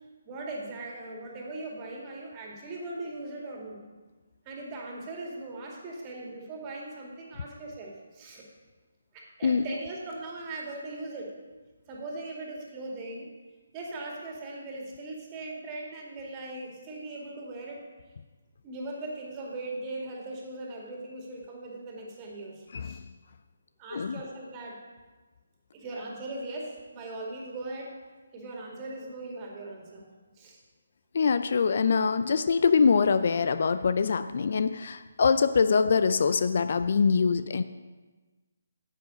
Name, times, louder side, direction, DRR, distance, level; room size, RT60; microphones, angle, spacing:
voice 1, 0.3-3.8 4.5-8.4 9.1-11.3 11.9-13.3 13.7-17.8 18.6-23.0 23.8-24.8 25.7-27.9 28.3-30.0 30.4-30.6, right 2 dB, 25° right, -1 dB, 2.2 m, -39 dB
voice 2, 31.1-37.6, left 5 dB, 55° left, 12 dB, 0.4 m, -24 dB
10.0 x 8.1 x 5.2 m, 1.3 s
figure-of-eight pair, 145°, 0 cm